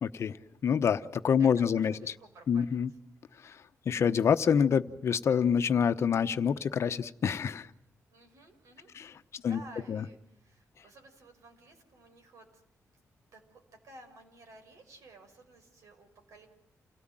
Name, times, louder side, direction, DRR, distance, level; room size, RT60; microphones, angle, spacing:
voice 1, 0.0-0.4 0.6-1.9 2.5-2.9 3.4-3.6 3.9-7.7 8.9-9.1 9.4-9.6 9.9-10.0, left 7 dB, 55° left, 10 dB, 1.0 m, -26 dB
voice 2, 1.4-2.8 8.1-8.9 9.3-12.6 12.9-13.0 13.3-16.5, right 2 dB, 70° right, 5 dB, 5.9 m, -54 dB
29.0 x 17.5 x 9.0 m, 0.78 s
wide cardioid pair, 130°, 6 cm